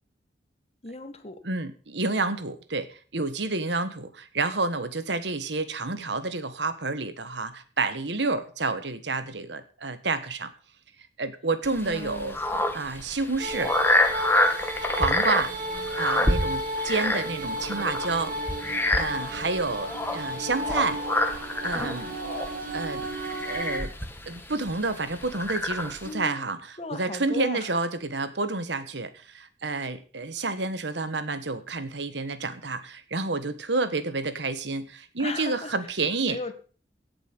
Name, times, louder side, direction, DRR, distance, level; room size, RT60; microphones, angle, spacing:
voice 1, 0.8-1.4 11.9-12.6 26.0-26.5 26.8-27.7 35.2-35.7 36.3-36.5, left 3 dB, 35° left, 8 dB, 1.6 m, -36 dB
voice 2, 1.4-10.5 11.2-12.4 12.7-13.7 14.9-15.6 16.0-18.3 19.0-21.0 21.6-22.2 22.7-23.1 23.4-23.9 24.3-36.4, right 3 dB, 70° right, 12 dB, 1.4 m, -29 dB
sound 1, 11.6-26.1, left 1 dB, 15° left, 1.6 m, -28 dB
sound 2, 13.4-23.8, right 1 dB, 50° right, 2.9 m, -33 dB
sound 3, 15.0-21.2, right 2 dB, 20° right, 2.7 m, -47 dB
17.0 x 6.9 x 6.1 m, 0.40 s
head